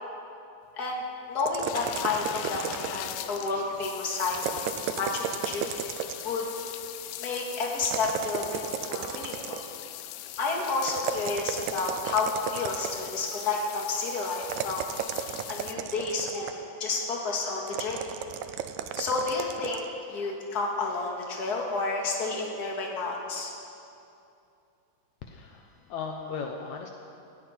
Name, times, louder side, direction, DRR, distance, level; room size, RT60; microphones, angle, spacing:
voice 1, 0.8-2.6 2.9-4.7 5.0-5.7 6.0-6.5 7.2-9.6 10.4-14.9 15.5-18.0 19.0-23.5, left 3 dB, 35° left, -1 dB, 2.3 m, -30 dB
sound 1, 1.4-3.3 4.3-6.4 7.8-9.8 10.9-13.2 14.4-16.7 17.7-19.9, right 9 dB, 80° right, 2.0 m, -34 dB
sound 2, 1.6-15.7, left 13 dB, 90° left, 2.1 m, -40 dB
voice 2, 25.2-26.9, left 5 dB, 75° left, 3 dB, 2.2 m, -37 dB
19.5 x 16.0 x 4.5 m, 2.6 s
omnidirectional pair, 3.5 m